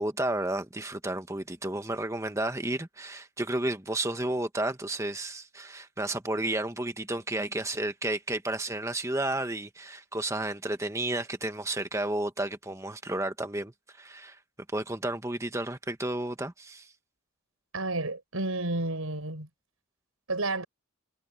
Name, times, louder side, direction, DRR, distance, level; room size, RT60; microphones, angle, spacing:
voice 1, 0.0-14.4 14.7-16.9, right 1 dB, 15° right, 1.4 m, -32 dB
voice 2, 17.7-19.5 20.3-20.6, right 2 dB, 85° right, 6.4 m, -31 dB
head